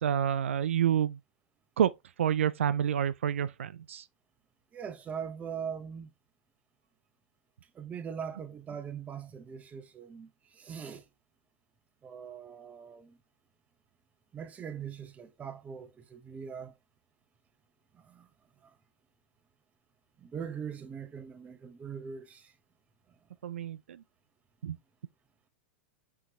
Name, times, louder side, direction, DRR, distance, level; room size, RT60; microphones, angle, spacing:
voice 1, 0.0-1.2 1.8-1.9 2.2-4.0 23.4-24.0 24.6-24.8, right 9 dB, 90° right, 0.3 m, -28 dB
voice 2, 4.7-6.1 7.7-11.0 12.0-13.2 14.3-16.7 17.9-18.3 18.6-18.7 20.2-22.5, right 7 dB, 20° right, 0.8 m, -41 dB
5.6 x 3.1 x 2.9 m
hypercardioid pair, 120°, 7 cm